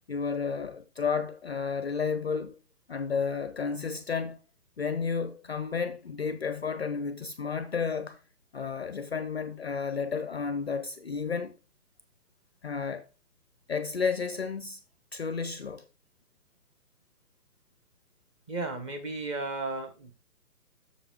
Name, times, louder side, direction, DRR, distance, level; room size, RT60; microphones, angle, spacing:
voice 1, 0.1-2.6 2.9-4.4 4.8-8.2 8.5-11.6 12.6-13.0 13.7-14.8 15.1-15.8, left 5 dB, 40° left, 0.5 m, -32 dB
voice 2, 18.5-20.1, right 3 dB, 20° right, 1.1 m, -34 dB
7.0 x 6.6 x 3.8 m
hypercardioid pair, 150°, 49 cm